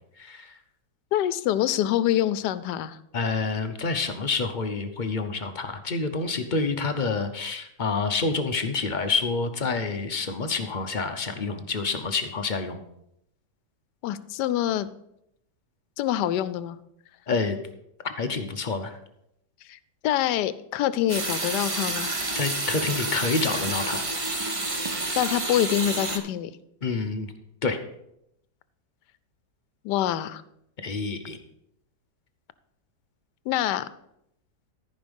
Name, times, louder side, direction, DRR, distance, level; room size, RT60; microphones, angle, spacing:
voice 1, 0.2-0.5 3.1-12.8 17.3-17.6 18.0-18.9 22.3-24.0 26.8-27.3 27.6-27.8 30.8-31.4, left 4 dB, 45° left, 7 dB, 0.6 m, -28 dB
voice 2, 1.1-3.0 14.0-14.9 16.0-16.8 19.7-19.8 20.0-22.1 25.2-26.5 29.8-30.4 33.5-33.9, left 12 dB, 80° left, 16 dB, 1.2 m, -25 dB
sound 1, 21.1-26.2, right 2 dB, 25° right, 0.9 m, -29 dB
14.0 x 5.3 x 5.3 m, 0.79 s
omnidirectional pair, 1.8 m